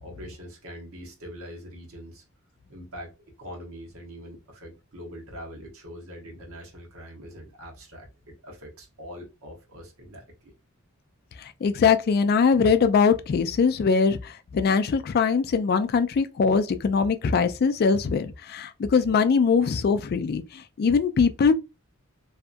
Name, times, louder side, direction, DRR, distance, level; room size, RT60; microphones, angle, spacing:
voice 1, 0.0-2.2 2.7-10.5, equal, 85° right, 1.1 m, -43 dB
voice 2, 11.4-21.5, left 5 dB, 45° left, 0.3 m, -22 dB
2.7 x 2.3 x 2.5 m
head